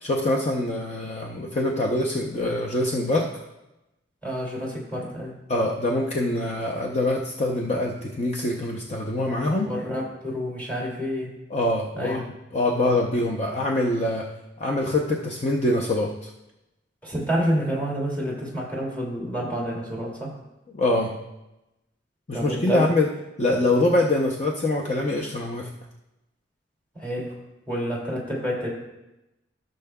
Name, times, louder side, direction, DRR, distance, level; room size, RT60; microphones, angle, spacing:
voice 1, 0.0-3.3 5.5-9.7 11.5-14.3 14.6-16.3 20.7-21.1 22.3-23.1 23.4-25.7, left 2 dB, 35° left, -1 dB, 0.6 m, -24 dB
voice 2, 4.2-5.4 9.6-11.3 12.0-12.2 17.0-20.3 22.3-22.8 26.9-27.4 27.7-28.7, equal, 10° left, -5 dB, 2.4 m, -28 dB
15.5 x 6.5 x 2.3 m, 0.95 s
head